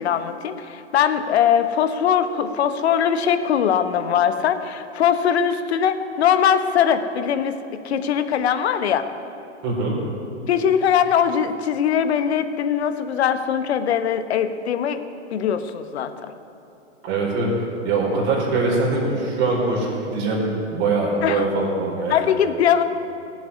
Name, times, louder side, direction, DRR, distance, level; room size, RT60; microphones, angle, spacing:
voice 1, 0.0-7.6 7.8-9.1 10.5-15.0 15.3-16.3 21.2-21.5 22.1-22.8, left 8 dB, 60° left, 10 dB, 1.2 m, -21 dB
voice 2, 9.6-9.9 17.0-17.5 17.8-20.4 20.7-22.2, right 3 dB, 35° right, -2 dB, 4.7 m, -22 dB
16.0 x 7.9 x 9.7 m, 2.7 s
hypercardioid pair, 115°, 37 cm